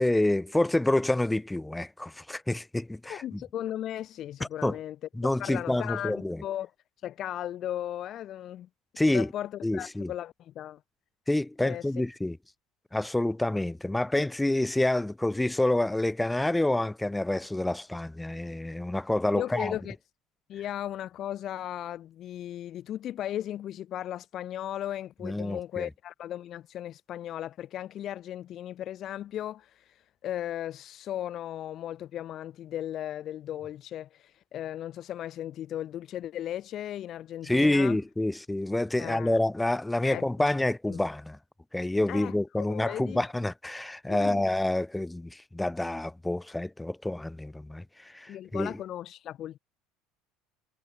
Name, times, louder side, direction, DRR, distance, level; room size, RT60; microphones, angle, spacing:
voice 1, 0.0-3.4 4.6-4.8 5.2-6.4 9.0-9.3 9.6-10.1 11.3-12.4 12.9-19.8 25.2-25.9 37.4-41.4 41.7-48.7, left 1 dB, 5° left, 2.2 m, -28 dB
voice 2, 3.1-5.0 5.4-6.7 7.0-8.7 9.1-10.8 11.6-11.9 19.3-20.0 20.5-30.0 30.2-38.0 39.0-39.4 40.0-40.3 40.9-41.0 42.1-43.2 44.1-44.5 48.3-49.6, left 11 dB, 35° left, 1.6 m, -36 dB
cardioid pair, 165°, 0 cm